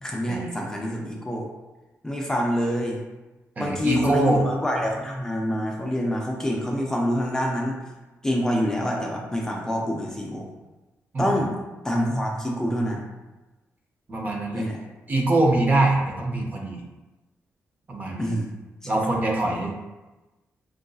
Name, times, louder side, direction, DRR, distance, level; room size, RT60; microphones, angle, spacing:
voice 1, 0.0-1.5 2.0-3.0 3.6-7.8 8.2-10.5 11.2-11.6 11.8-13.1 14.5-14.8 18.2-18.5 18.8-18.9, equal, 10° left, -1 dB, 0.4 m, -26 dB
voice 2, 3.6-4.4 11.1-11.4 14.1-14.6 15.1-16.8 17.9-18.3 18.8-19.7, right 2 dB, 35° right, 0 dB, 0.6 m, -23 dB
4.6 x 2.5 x 2.3 m, 1.1 s
wide cardioid pair, 135°, 5 cm